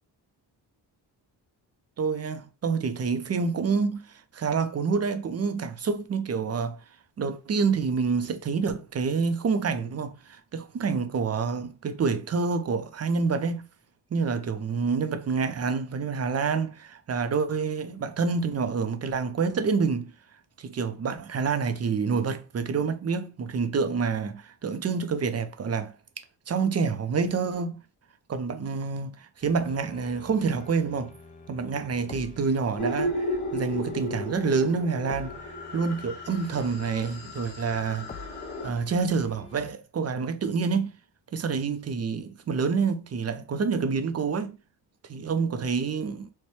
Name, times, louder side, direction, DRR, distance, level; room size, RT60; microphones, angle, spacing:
voice 1, 2.0-6.8 7.2-13.6 14.1-20.1 20.6-25.9 26.5-27.8 28.3-31.1 31.5-35.4 35.7-38.3 38.6-40.9 41.3-44.6 45.1-46.3, right 5 dB, 35° right, 0.5 m, -27 dB
sound 1, 29.4-39.7, left 4 dB, 20° left, 0.4 m, -48 dB
sound 2, 32.8-38.7, left 1 dB, 60° left, 1.8 m, -34 dB
4.2 x 2.2 x 3.1 m
cardioid pair, 125°, 44 cm